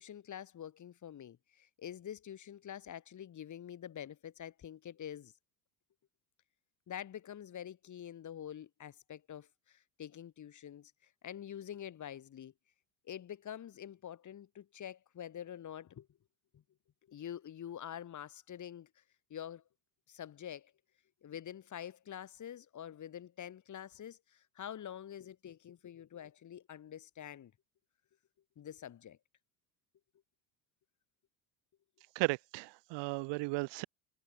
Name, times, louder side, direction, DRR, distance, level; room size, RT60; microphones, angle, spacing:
voice 1, 0.0-5.3 6.9-12.5 13.0-16.1 16.5-16.6 17.1-19.0 19.3-19.6 20.1-20.7 21.2-27.5 28.6-29.2, left 10 dB, 35° left, 2.3 m, -46 dB
voice 2, 32.1-33.8, right 26 dB, 60° right, 1.2 m, -35 dB
hypercardioid pair, 80°, 48 cm